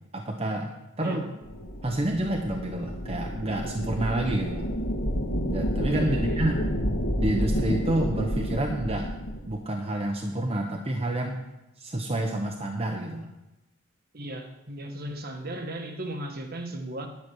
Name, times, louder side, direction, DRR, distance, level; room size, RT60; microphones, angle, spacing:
voice 1, 0.1-0.7 1.0-1.3 1.8-4.7 5.5-6.6 7.2-9.1 9.5-11.4 11.8-13.3, right 1 dB, 30° right, 2 dB, 0.9 m, -28 dB
sound 1, 1.4-9.5, equal, 55° left, 1.9 m, -30 dB
voice 2, 5.9-6.4 14.1-17.1, right 1 dB, 45° right, 5 dB, 1.3 m, -36 dB
10.5 x 7.1 x 6.2 m, 0.96 s
head